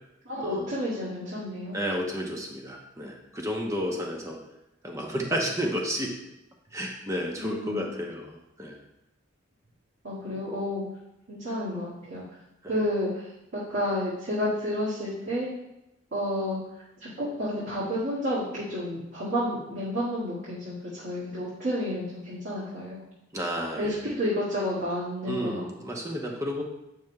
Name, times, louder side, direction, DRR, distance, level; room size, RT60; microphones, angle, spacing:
voice 1, 0.3-1.8 7.4-7.9 10.0-10.8 11.3-12.2 12.7-13.3 13.5-15.5 16.1-16.6 17.0-23.0 23.8-25.6, equal, 70° right, -10 dB, 2.0 m, -30 dB
voice 2, 1.7-4.4 4.8-6.1 6.7-8.8 10.3-10.4 12.6-12.8 23.3-24.0 25.2-26.6, equal, 15° right, 0 dB, 0.9 m, -31 dB
9.0 x 6.4 x 2.3 m, 0.89 s
head